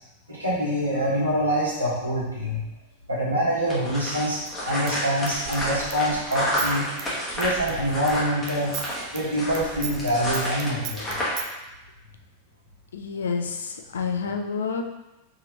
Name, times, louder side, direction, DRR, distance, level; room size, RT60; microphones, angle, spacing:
voice 1, 0.3-2.6 3.1-4.4 4.6-6.9 7.4-8.7 9.1-11.1, equal, 80° right, -7 dB, 1.3 m, -25 dB
sound 1, 3.7-11.5, left 1 dB, 15° left, 1.2 m, -30 dB
Human voice / Scissors, 4.5-8.2 8.5-11.5, right 8 dB, 40° right, 0.4 m, -38 dB
voice 2, 12.9-14.8, left 5 dB, 65° left, 4 dB, 0.4 m, -29 dB
3.4 x 3.2 x 2.9 m, 0.99 s
figure-of-eight pair, 90°, 0 cm